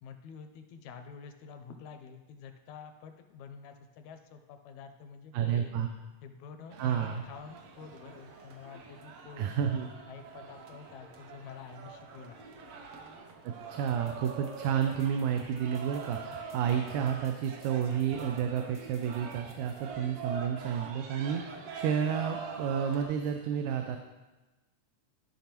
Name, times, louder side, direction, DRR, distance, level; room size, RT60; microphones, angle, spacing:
voice 1, 0.0-5.7 6.2-9.5 10.1-12.6, left 6 dB, 80° left, 7 dB, 1.9 m, -48 dB
voice 2, 5.3-5.9 6.8-7.2 9.4-9.9 13.4-24.0, right 8 dB, 90° right, 5 dB, 2.0 m, -31 dB
sound 1, 6.7-23.0, right 5 dB, 70° right, 1.6 m, -44 dB
sound 2, 13.9-19.8, equal, 30° right, 0.4 m, -53 dB
13.5 x 5.3 x 3.0 m, 1.1 s
omnidirectional pair, 3.3 m